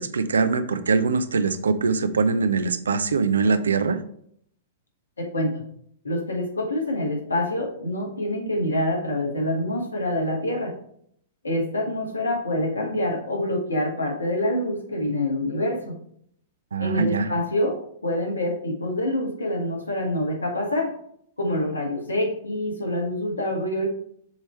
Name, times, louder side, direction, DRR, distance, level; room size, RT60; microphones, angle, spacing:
voice 1, 0.0-4.0 16.7-17.3, right 4 dB, 75° right, 11 dB, 0.6 m, -22 dB
voice 2, 5.2-5.6 6.0-10.7 11.4-16.0 16.8-21.0 21.4-23.9, left 1 dB, 80° left, 1 dB, 1.8 m, -26 dB
7.2 x 3.4 x 4.5 m, 0.66 s
figure-of-eight pair, 105°, 0 cm